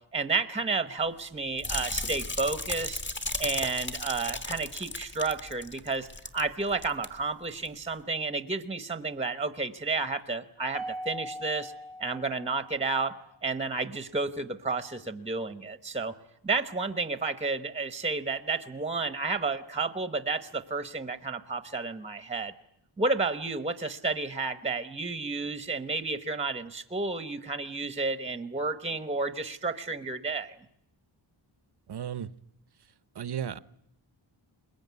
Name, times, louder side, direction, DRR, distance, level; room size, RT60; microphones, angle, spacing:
voice 1, 0.1-3.0 3.4-6.1 6.3-11.7 12.0-13.1 13.4-16.1 16.4-22.5 23.0-30.6, right 3 dB, 15° right, 1.0 m, -31 dB
sound 1, 1.6-6.5 6.7-7.1 7.5-7.7, left 2 dB, 25° left, 1.6 m, -35 dB
Mallet percussion, 10.7-13.2, equal, 75° left, 4.7 m, -41 dB
voice 2, 31.9-32.3 33.1-33.6, right 9 dB, 55° right, 0.9 m, -34 dB
21.5 x 21.0 x 9.5 m
wide cardioid pair, 155°, 47 cm